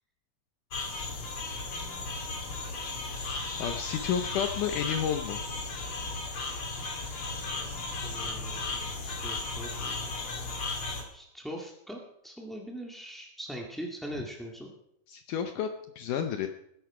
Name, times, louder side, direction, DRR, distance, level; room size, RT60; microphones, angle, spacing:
sound 1, 0.7-11.0, left 3 dB, 40° left, 2.5 m, -35 dB
voice 1, 3.6-5.4 15.1-16.5, left 8 dB, 75° left, 7 dB, 2.1 m, -31 dB
voice 2, 8.0-10.3 11.1-14.7, right 1 dB, ahead, -1 dB, 0.4 m, -42 dB
20.0 x 10.5 x 4.9 m, 0.78 s
omnidirectional pair, 4.2 m